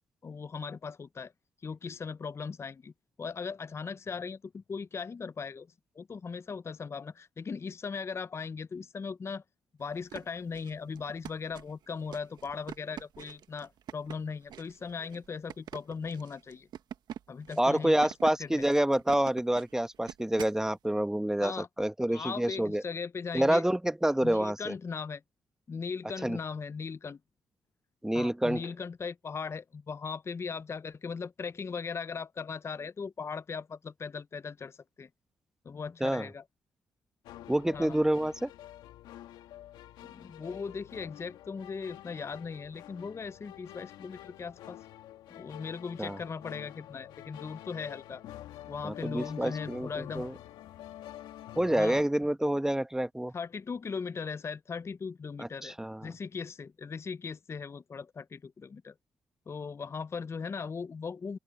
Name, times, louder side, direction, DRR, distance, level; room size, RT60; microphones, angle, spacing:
voice 1, 0.2-1.3 1.6-2.9 3.2-5.7 6.0-9.4 9.8-16.7 17.3-18.0 18.4-18.7 21.4-21.7 22.1-23.6 24.2-25.2 25.7-27.2 28.1-35.1 35.6-36.4 37.7-38.0 40.0-44.8 45.3-48.2 48.7-50.2 51.7-52.0 53.3-55.8 56.0-58.9 59.5-61.4, left 5 dB, 35° left, 0.5 m, -38 dB
sound 1, 9.9-20.6, right 9 dB, 75° right, 1.3 m, -46 dB
voice 2, 17.6-22.8 23.3-24.7 26.2-26.4 28.0-28.7 36.0-36.3 37.5-38.5 46.0-46.2 48.8-50.3 51.6-53.3 55.4-56.1, right 1 dB, 5° right, 1.2 m, -28 dB
sound 2, 37.2-52.0, left 13 dB, 90° left, 2.1 m, -48 dB
open air
supercardioid pair, 60°, 7 cm